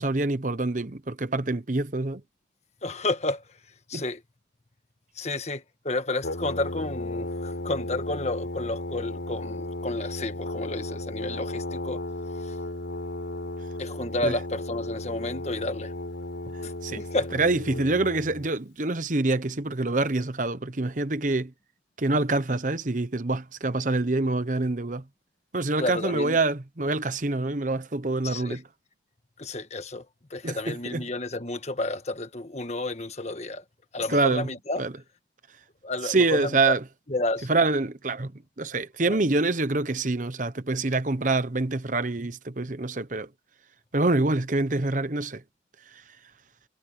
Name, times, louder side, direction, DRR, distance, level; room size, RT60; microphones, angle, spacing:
voice 1, 0.0-2.2 3.9-4.0 14.2-14.4 16.8-17.0 17.3-21.5 22.0-25.0 25.5-28.6 30.4-31.0 34.1-34.5 34.8-34.9 36.0-36.8 37.5-38.3 38.6-43.3 43.9-45.4, right 2 dB, 45° right, 1.0 m, -26 dB
voice 2, 2.8-3.4 3.9-4.2 5.1-12.0 12.4-12.5 13.8-15.9 16.6-17.3 25.8-26.4 28.2-28.6 29.4-33.6 33.9-34.8 35.8-36.7 37.1-37.5 39.1-39.2, left 2 dB, 35° left, 1.5 m, -31 dB
Brass instrument, 6.2-18.5, left 1 dB, 85° left, 4.1 m, -35 dB
head